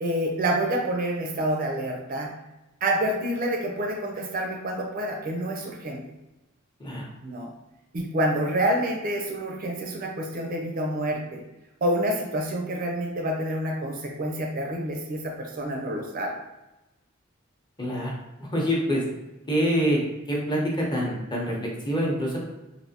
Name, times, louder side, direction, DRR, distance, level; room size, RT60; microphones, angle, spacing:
voice 1, 0.0-2.3 2.8-6.0 7.2-7.5 7.9-11.4 11.8-16.3, right 1 dB, 45° right, 1 dB, 0.4 m, -28 dB
voice 2, 17.8-18.1 18.4-19.0 19.5-20.0 20.3-22.4, equal, 20° left, -4 dB, 0.8 m, -26 dB
3.4 x 2.5 x 2.8 m, 0.99 s
head